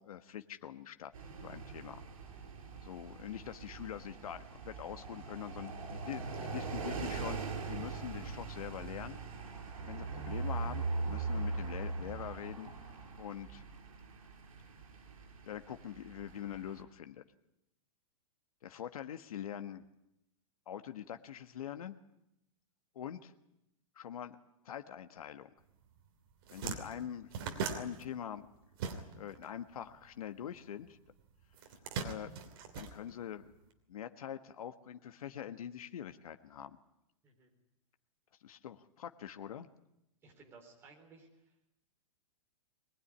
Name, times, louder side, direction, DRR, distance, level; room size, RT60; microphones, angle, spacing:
voice 1, 0.0-2.0 2.8-9.2 9.8-12.7 13.2-13.6 15.4-17.2 18.6-19.8 20.7-22.0 22.9-23.3 23.9-24.4 24.6-25.5 26.5-27.3 27.7-28.5 28.9-31.0 32.0-32.3 32.8-33.5 33.9-36.8 38.4-39.7, left 9 dB, 80° left, 9 dB, 1.4 m, -44 dB
sound 1, 1.1-16.8, right 4 dB, 65° right, 6.1 m, -41 dB
sound 2, 25.9-26.0 26.3-29.4 29.7-30.9 31.5-33.6, right 5 dB, 40° right, 2.9 m, -40 dB
voice 2, 40.2-41.3, right 4 dB, 15° right, 0 dB, 4.0 m, -58 dB
22.0 x 20.0 x 9.9 m, 0.83 s
supercardioid pair, 175°, 18 cm